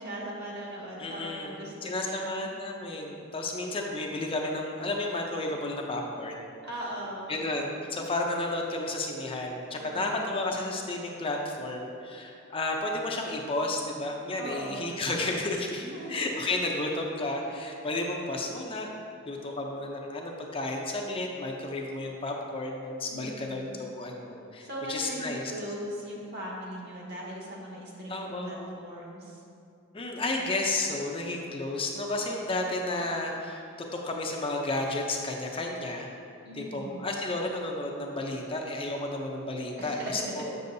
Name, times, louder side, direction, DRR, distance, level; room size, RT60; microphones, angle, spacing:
voice 1, 0.0-2.5 6.6-7.3 9.7-10.7 14.4-15.4 15.8-16.4 23.0-23.7 24.6-29.4 36.4-37.1 39.8-40.4, right 1 dB, 55° right, -4 dB, 1.4 m, -39 dB
voice 2, 1.0-6.5 7.3-18.9 19.3-25.5 28.1-28.8 29.9-33.7 33.9-36.1 36.5-40.6, left 2 dB, 25° left, 1 dB, 0.5 m, -32 dB
7.3 x 6.7 x 2.7 m, 2.5 s
head